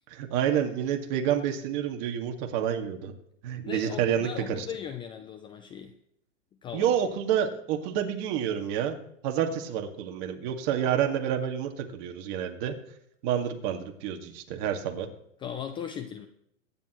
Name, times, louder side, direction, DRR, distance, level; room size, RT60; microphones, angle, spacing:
voice 1, 0.1-3.1 3.4-4.7 6.7-9.0 9.2-12.7 13.2-15.1, right 9 dB, 45° right, 5 dB, 2.0 m, -28 dB
voice 2, 3.6-5.9 6.6-6.9 15.4-16.3, left 8 dB, 15° left, 9 dB, 0.4 m, -38 dB
23.5 x 10.0 x 3.1 m, 0.75 s
hypercardioid pair, 135°, 37 cm